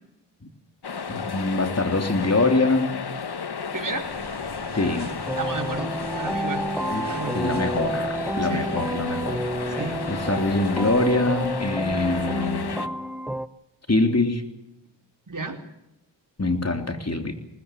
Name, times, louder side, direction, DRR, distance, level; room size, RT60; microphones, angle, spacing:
sound 1, 0.8-12.9, left 6 dB, 55° left, 1.4 m, -33 dB
voice 1, 1.1-3.0 4.7-5.1 6.9-12.8 13.9-14.4 16.4-17.3, left 2 dB, 35° left, 6 dB, 3.6 m, -24 dB
voice 2, 3.7-4.1 5.4-5.9 6.2-6.6 7.1-7.4 8.4-8.7 9.6-10.0 15.3-15.6, right 3 dB, 45° right, 4 dB, 4.4 m, -32 dB
sound 2, 3.8-11.1, right 4 dB, 60° right, 5.2 m, -39 dB
sound 3, 5.3-13.5, right 1 dB, 5° right, 1.0 m, -30 dB
21.5 x 20.0 x 7.7 m, 0.88 s
cardioid pair, 50°, 45 cm